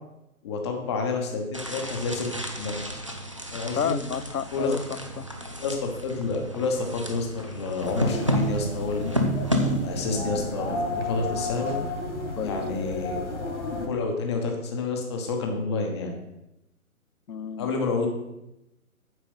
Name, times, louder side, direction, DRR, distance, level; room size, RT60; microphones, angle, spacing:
voice 1, 0.4-2.3 2.6-2.8 3.5-4.0 4.5-4.7 5.5-9.4 9.8-11.7 12.4-13.2 13.9-16.1 17.6-18.1, left 3 dB, 20° left, 2 dB, 1.1 m, -29 dB
sound 1, 1.5-10.4, equal, 25° right, 0.4 m, -31 dB
voice 2, 3.8-5.2 12.4-12.6 17.3-17.7, left 8 dB, 85° left, 14 dB, 0.6 m, -31 dB
sound 2, 7.8-13.9, left 2 dB, 50° left, 2.5 m, -32 dB
9.1 x 6.7 x 5.6 m, 0.92 s
figure-of-eight pair, 140°, 43 cm